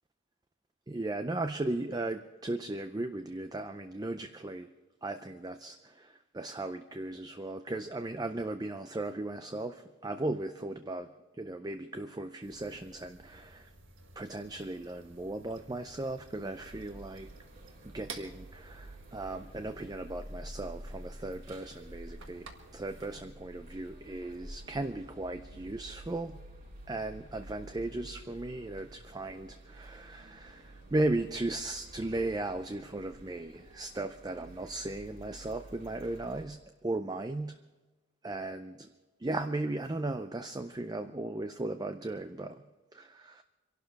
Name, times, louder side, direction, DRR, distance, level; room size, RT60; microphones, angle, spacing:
voice 1, 0.9-4.7 5.0-11.1 11.4-13.7 14.2-17.3 17.9-26.4 26.9-37.6 38.2-38.9 39.2-42.6 42.9-43.4, right 2 dB, 20° right, 8 dB, 0.4 m, -36 dB
sound 1, 12.4-23.1, right 3 dB, 60° right, 1.7 m, -54 dB
sound 2, 16.5-36.4, right 1 dB, 40° right, 4.8 m, -50 dB
26.0 x 12.0 x 4.7 m, 1.1 s
head